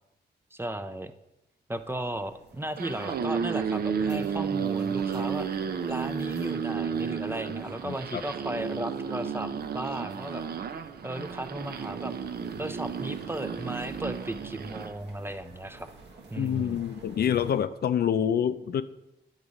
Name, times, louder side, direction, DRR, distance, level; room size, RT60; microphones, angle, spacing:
voice 1, 0.5-1.1 1.7-5.5 5.8-10.4 11.0-12.1 12.6-15.9 16.3-16.8, right 1 dB, 10° right, 10 dB, 0.5 m, -35 dB
sound 1, 1.7-17.6, right 2 dB, 75° right, 1.5 m, -52 dB
sound 2, 2.6-14.9, right 6 dB, 60° right, 0.6 m, -32 dB
voice 2, 7.8-8.2 16.4-18.8, left 9 dB, 60° left, 13 dB, 0.4 m, -27 dB
8.3 x 4.0 x 5.0 m, 0.91 s
cardioid pair, 80°, 18 cm